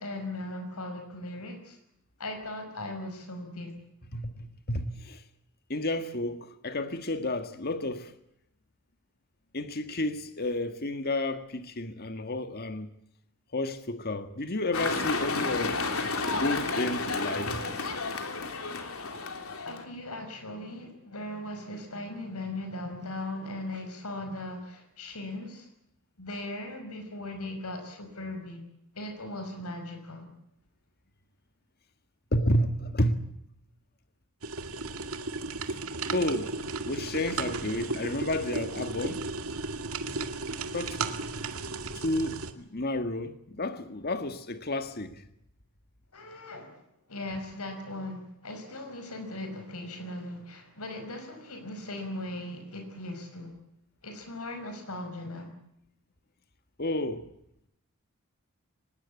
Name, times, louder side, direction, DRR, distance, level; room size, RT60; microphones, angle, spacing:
voice 1, 0.0-1.8 2.2-3.8 19.2-19.3 19.6-25.7 26.2-28.7 28.9-30.3 46.1-46.8 47.1-53.5 54.0-55.5, left 1 dB, 90° left, 5.4 m, -38 dB
voice 2, 4.1-5.2 5.7-8.1 9.5-12.9 13.5-15.8 16.3-17.6 32.3-33.2 36.1-36.5 36.8-39.2 40.7-41.0 42.0-45.2 56.8-57.3, left 1 dB, 45° left, 1.7 m, -31 dB
sound 1, 14.7-19.8, left 3 dB, 70° left, 3.5 m, -31 dB
sound 2, 34.4-42.5, right 3 dB, 75° right, 2.2 m, -35 dB
24.5 x 20.5 x 8.4 m
head